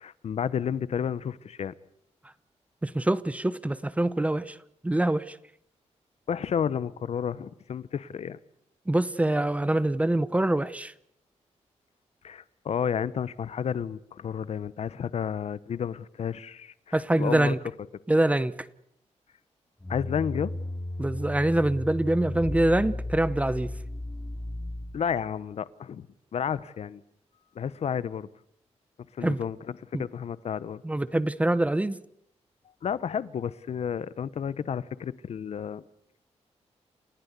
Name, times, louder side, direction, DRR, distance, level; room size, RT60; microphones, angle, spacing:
voice 1, 0.0-1.7 6.3-8.4 12.2-17.5 19.9-20.5 24.9-26.1 26.3-27.0 27.5-28.3 29.1-30.8 32.8-35.8, left 8 dB, 65° left, 0.9 m, -31 dB
voice 2, 2.8-4.6 4.8-5.4 8.9-10.9 16.9-17.6 18.1-18.6 21.0-23.7 29.2-29.4 29.9-30.0 30.8-32.0, right 1 dB, 10° right, 0.8 m, -25 dB
sound 1, 19.8-25.2, left 1 dB, 10° left, 3.6 m, -35 dB
29.0 x 15.5 x 8.2 m
wide cardioid pair, 135°, 12 cm